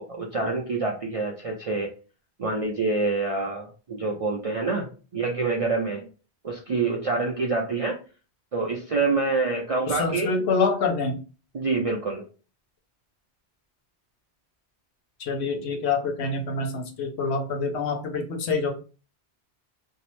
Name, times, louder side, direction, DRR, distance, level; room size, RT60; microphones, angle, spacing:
voice 1, 0.0-1.9 2.4-4.9 5.1-6.1 6.4-8.0 8.5-10.5 11.5-12.2, right 3 dB, 55° right, -1 dB, 0.4 m, -26 dB
voice 2, 9.9-11.2 15.2-18.7, left 4 dB, 80° left, 3 dB, 0.9 m, -26 dB
2.6 x 2.0 x 3.0 m, 0.35 s
omnidirectional pair, 1.1 m